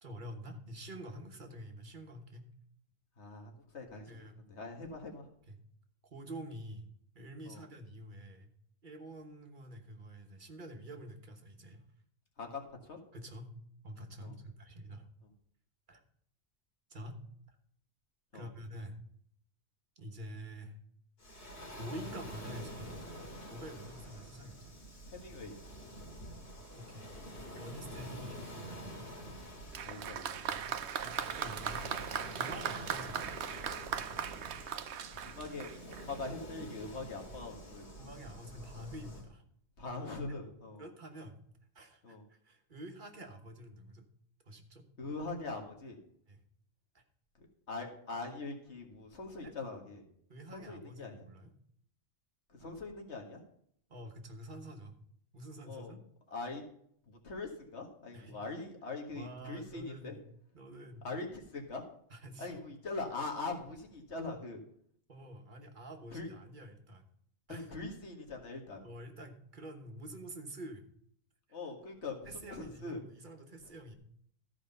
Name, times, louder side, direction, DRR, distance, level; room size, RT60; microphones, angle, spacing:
voice 1, 0.0-2.5 4.1-4.4 5.5-5.6 6.0-6.8 7.1-8.5 8.8-11.8 13.1-13.5 13.8-15.1 15.9-16.0 16.9-17.2 17.5-17.6 18.3-19.0 20.0-20.8 21.8-23.0 23.5-24.7 26.7-27.2 27.5-29.1 30.5-31.9 32.3-33.3 38.0-39.4 40.0-40.4 40.8-41.4 41.7-44.1 44.4-44.9 46.3-46.4 46.9-47.0 49.4-49.5 50.3-51.5 53.9-54.9 55.3-56.0 58.1-58.4 59.1-60.2 60.5-61.1 62.1-62.5 65.1-67.0 67.5-67.7 68.8-70.8 72.2-73.9, right 1 dB, 50° right, 5 dB, 1.4 m, -47 dB
voice 2, 3.2-5.3 7.5-7.6 12.4-13.0 14.2-14.4 18.3-18.5 25.1-25.6 29.2-29.4 29.8-30.4 35.2-38.1 39.8-40.9 42.0-42.2 45.0-46.0 47.4-50.0 50.5-51.2 52.5-53.4 55.7-55.9 56.3-56.6 57.1-60.2 61.0-61.8 62.4-64.6 66.1-66.3 67.5-68.8 71.5-73.0 73.6-74.0, left 3 dB, 85° left, 2 dB, 2.0 m, -42 dB
Waves surf, 21.2-39.2, equal, 65° left, 2.7 m, -48 dB
Applause, 29.7-36.2, right 8 dB, 85° right, 1.0 m, -39 dB
14.0 x 4.9 x 5.4 m, 0.66 s
omnidirectional pair, 1.1 m